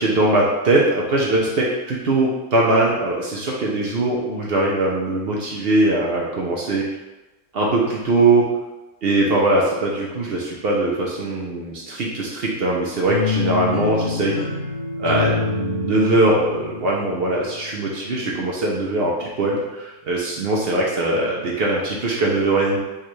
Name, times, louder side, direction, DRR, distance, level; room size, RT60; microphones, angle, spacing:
voice 1, 0.0-7.0 7.5-8.5 9.0-14.4 15.0-22.8, right 2 dB, 60° right, -3 dB, 0.6 m, -21 dB
sound 1, 13.1-18.2, left 5 dB, 30° left, 0.7 m, -27 dB
4.6 x 2.3 x 3.1 m, 1.1 s
omnidirectional pair, 1.5 m